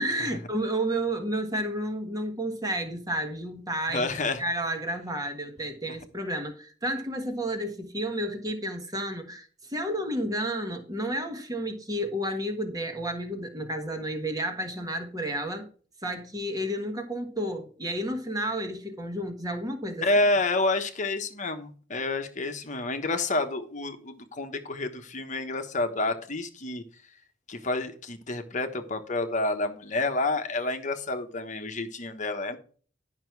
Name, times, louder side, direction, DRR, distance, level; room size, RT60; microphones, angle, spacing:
voice 1, 0.0-4.1 4.4-15.7 16.0-20.1, right 1 dB, 20° right, 1.5 m, -31 dB
voice 2, 3.9-4.4 20.0-26.8 27.5-32.6, left 2 dB, 40° left, 1.1 m, -29 dB
11.0 x 6.0 x 4.6 m
head